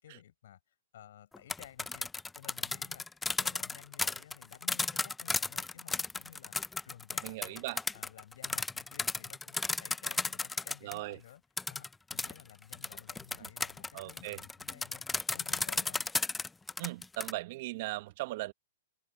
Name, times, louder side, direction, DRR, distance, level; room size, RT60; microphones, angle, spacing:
voice 1, 0.0-7.7 7.9-11.4 11.7-16.1, left 11 dB, 65° left, 7.4 m, -55 dB
sound 1, 1.3-11.0 11.6-17.3, left 3 dB, 10° left, 0.6 m, -34 dB
voice 2, 7.2-7.8 10.8-11.2 13.9-14.4 16.8-18.5, right 19 dB, 50° right, 1.7 m, -38 dB
open air
hypercardioid pair, 130°, 0 cm